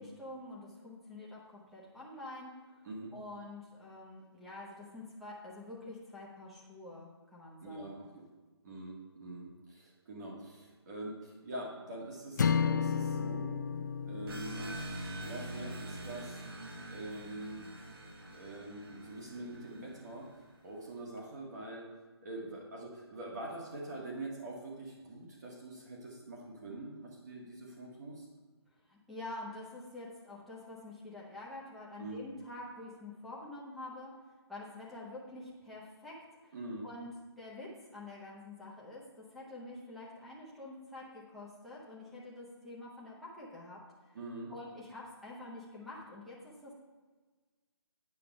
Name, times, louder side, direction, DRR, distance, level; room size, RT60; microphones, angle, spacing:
voice 1, 0.0-2.8 3.1-8.1 28.9-34.1 34.5-36.2 36.4-36.5 36.8-44.2 44.5-46.7, left 2 dB, ahead, -6 dB, 0.7 m, -47 dB
voice 2, 7.6-8.2 8.6-13.6 14.0-16.4 16.9-17.7 18.3-20.3 20.6-21.9 22.2-28.3 32.0-32.2 36.5-36.8 44.1-44.5, right 2 dB, 40° right, -3 dB, 1.7 m, -44 dB
sound 1, 12.4-16.7, left 6 dB, 45° left, 0.4 m, -34 dB
sound 2, 14.3-20.5, right 2 dB, 55° right, 1.4 m, -45 dB
8.7 x 5.8 x 5.2 m, 1.4 s
hypercardioid pair, 170°, 14 cm